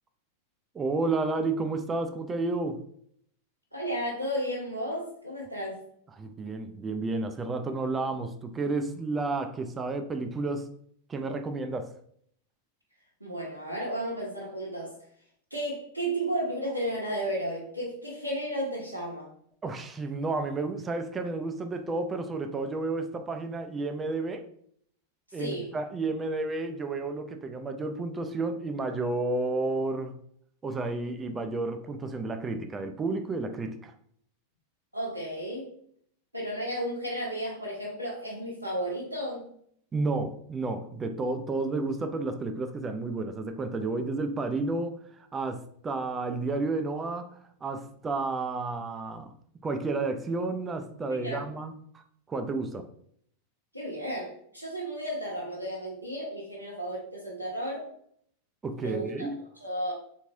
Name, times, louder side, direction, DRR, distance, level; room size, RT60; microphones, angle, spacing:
voice 1, 0.7-2.8 6.2-10.7 11.1-11.9 19.6-24.5 25.3-30.1 30.6-33.9 39.9-47.3 47.6-49.3 49.6-52.0 52.3-52.9 58.6-59.4, right 3 dB, 20° right, 7 dB, 0.3 m, -31 dB
voice 2, 3.7-5.8 13.2-15.0 15.5-19.3 25.3-25.7 34.9-35.7 36.3-39.4 51.0-51.4 53.7-57.9 58.8-59.3 59.6-59.9, right 1 dB, 85° right, -4 dB, 0.8 m, -33 dB
3.6 x 3.0 x 2.6 m, 0.65 s
figure-of-eight pair, 90°, 0 cm